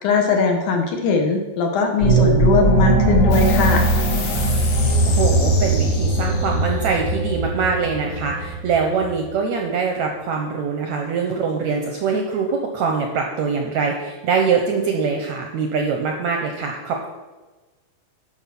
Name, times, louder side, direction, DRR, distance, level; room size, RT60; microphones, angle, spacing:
voice 1, 0.0-3.9, left 4 dB, 70° left, 3 dB, 2.3 m, -20 dB
sound 1, 2.0-9.0, right 1 dB, 50° left, 3.5 m, -19 dB
sound 2, 3.3-10.2, left 1 dB, 85° left, 3.6 m, -31 dB
voice 2, 5.1-17.1, right 5 dB, 75° right, 2 dB, 1.7 m, -23 dB
11.5 x 5.5 x 6.0 m, 1.2 s
omnidirectional pair, 4.1 m